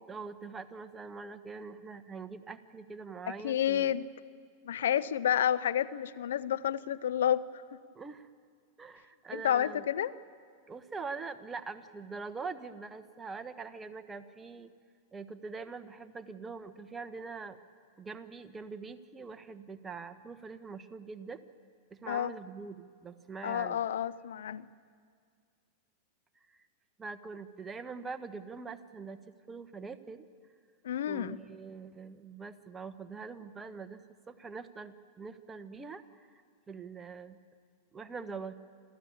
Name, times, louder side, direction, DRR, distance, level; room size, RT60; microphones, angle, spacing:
voice 1, 0.1-4.0 7.9-8.3 8.8-9.8 10.7-14.7 15.1-17.6 18.0-21.4 21.9-23.8 26.5-26.6 27.0-29.2 29.5-30.3 31.1-36.4 36.7-37.4 37.9-38.5, right 4 dB, 20° right, 10 dB, 1.2 m, -43 dB
voice 2, 3.3-4.1 4.6-7.6 9.3-10.1 22.1-22.3 23.4-24.7 30.8-31.4, left 10 dB, 75° left, 16 dB, 0.6 m, -30 dB
28.5 x 14.0 x 8.8 m, 2.1 s
hypercardioid pair, 100°, 0 cm